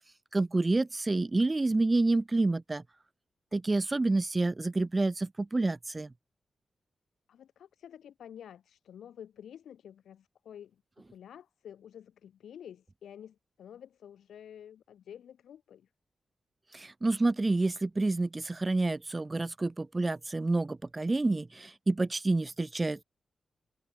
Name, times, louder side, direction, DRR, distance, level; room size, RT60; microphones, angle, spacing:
voice 1, 0.3-2.8 3.5-6.1 16.7-23.0, right 2 dB, 30° right, 0.5 m, -28 dB
voice 2, 7.3-10.8 11.1-15.9, left 9 dB, 90° left, 1.3 m, -50 dB
cardioid pair, 60°, 0 cm